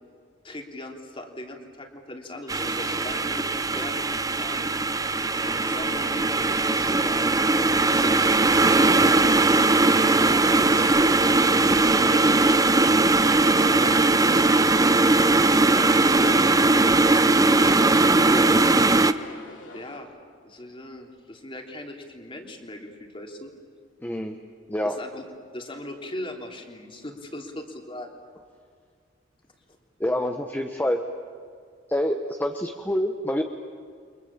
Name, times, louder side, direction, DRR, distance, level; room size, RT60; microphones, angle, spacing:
voice 1, 0.4-4.7 5.4-7.5 7.9-11.1 11.5-13.3 13.7-16.4 17.2-18.6 19.7-20.1 20.4-23.5 24.8-28.2, left 1 dB, 30° left, 2 dB, 3.3 m, -39 dB
sound 1, 2.5-19.1, right 2 dB, 20° right, 0.7 m, -20 dB
sound 2, 2.6-20.0, left 2 dB, 75° left, 3.9 m, -46 dB
voice 2, 24.0-24.4 24.7-25.0 30.0-31.0 31.9-33.4, left 1 dB, 10° left, 4 dB, 1.1 m, -26 dB
30.0 x 24.5 x 7.4 m, 2.1 s
head